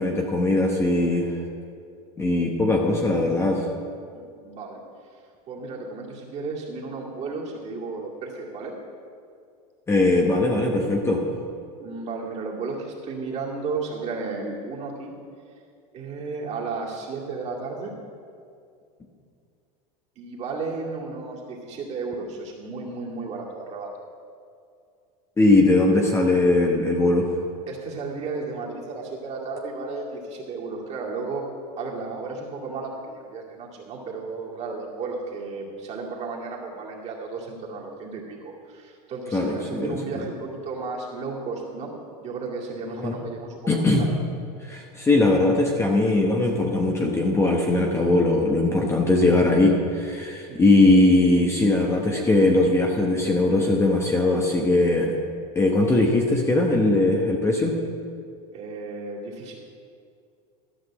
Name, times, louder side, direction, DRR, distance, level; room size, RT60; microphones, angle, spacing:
voice 1, 0.0-1.4 2.2-3.7 9.9-11.2 25.4-27.3 39.3-40.2 43.0-43.1 43.7-44.1 44.6-55.1 55.5-57.7, left 2 dB, 15° left, 0 dB, 0.9 m, -20 dB
voice 2, 4.1-4.8 5.5-8.7 11.8-15.1 15.9-17.9 20.2-23.9 27.7-31.5 31.8-41.9 42.2-43.8 50.5-50.6 58.5-59.5, right 4 dB, 35° right, -3 dB, 2.4 m, -33 dB
13.0 x 5.9 x 7.5 m, 2.3 s
supercardioid pair, 140°, 20 cm